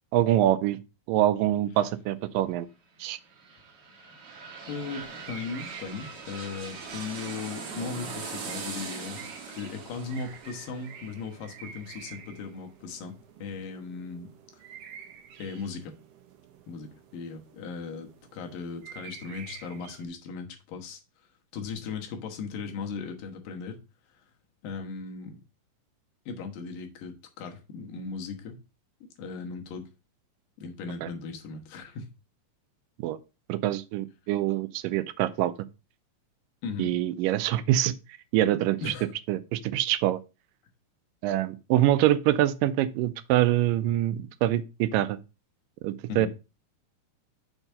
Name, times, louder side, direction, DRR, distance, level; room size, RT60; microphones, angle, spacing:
voice 1, 0.1-0.8 1.1-2.7 3.0-3.2 31.0-31.1 33.0-33.2 33.5-35.5 36.8-38.0 38.3-38.9 39.3-40.2 41.2-45.2 45.8-46.3, right 13 dB, 90° right, 2.2 m, -25 dB
sound 1, 3.0-12.7 13.1-13.2, right 5 dB, 50° right, 2.0 m, -41 dB
voice 2, 4.7-13.1 13.4-14.6 15.4-15.9 16.7-21.0 21.5-23.8 24.6-25.4 26.3-28.6 29.2-29.9 30.6-32.1 36.6-36.9 38.8-39.1 46.1-46.3, left 5 dB, 90° left, 3.0 m, -37 dB
sound 2, 4.7-20.1, right 7 dB, 70° right, 1.6 m, -50 dB
6.7 x 4.6 x 5.4 m
omnidirectional pair, 3.8 m